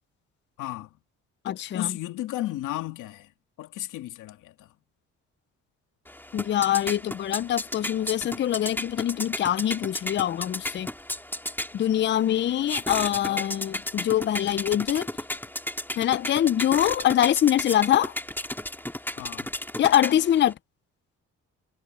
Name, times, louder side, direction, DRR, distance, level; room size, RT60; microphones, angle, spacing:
voice 1, 0.6-1.0 1.5-3.3 3.6-4.7 13.0-13.5 19.2-19.5, left 15 dB, 90° left, 2.7 m, -34 dB
voice 2, 1.4-2.0 6.3-10.9 11.7-15.1 16.0-18.1 19.8-20.6, left 11 dB, 40° left, 0.4 m, -24 dB
sound 1, 6.1-20.5, left 1 dB, 5° left, 2.7 m, -34 dB
cardioid pair, 90°, 30 cm